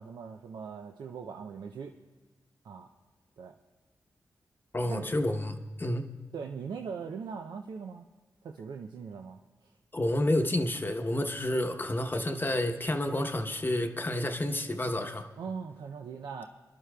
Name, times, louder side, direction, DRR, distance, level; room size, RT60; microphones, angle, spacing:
voice 1, 0.0-1.9 2.6-2.9 3.4-3.6 4.8-5.1 6.3-8.1 8.4-9.8 15.4-16.5, right 6 dB, 85° right, 4 dB, 0.5 m, -40 dB
voice 2, 4.7-6.1 9.9-15.3, left 1 dB, 30° left, 5 dB, 0.9 m, -30 dB
26.0 x 11.5 x 2.3 m, 1.3 s
cardioid pair, 45°, 7 cm